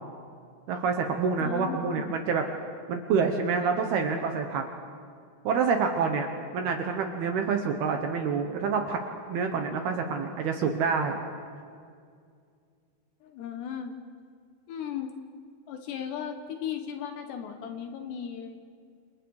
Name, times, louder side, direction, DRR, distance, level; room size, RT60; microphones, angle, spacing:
voice 1, 0.7-2.4 2.9-4.6 5.4-6.3 6.5-9.0 9.3-11.2, right 5 dB, 65° right, 4 dB, 2.7 m, -27 dB
voice 2, 1.4-2.1 13.2-13.9 14.7-15.1 15.7-18.6, left 8 dB, 70° left, 6 dB, 3.1 m, -36 dB
28.5 x 28.5 x 4.9 m, 2.2 s
omnidirectional pair, 5.7 m